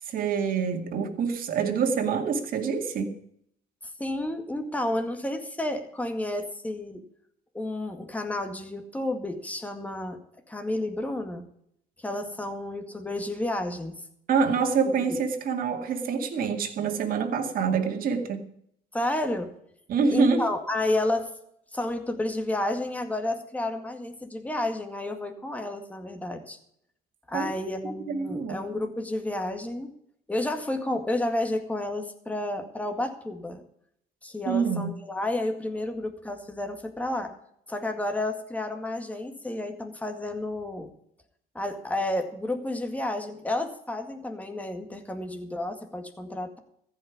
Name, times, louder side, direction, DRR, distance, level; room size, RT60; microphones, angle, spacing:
voice 1, 0.1-3.1 14.3-18.4 19.9-20.4 27.3-27.5 28.1-28.6 34.5-34.9, right 5 dB, 55° right, 4 dB, 2.2 m, -26 dB
voice 2, 4.0-7.0 7.5-10.2 10.5-11.5 12.0-13.9 14.8-15.2 18.9-19.5 20.1-21.3 21.7-26.6 27.3-29.9 30.3-33.6 34.2-37.3 37.7-40.9 41.5-46.6, left 1 dB, 10° left, 5 dB, 2.0 m, -31 dB
14.5 x 5.8 x 9.6 m, 0.71 s
cardioid pair, 110°, 17 cm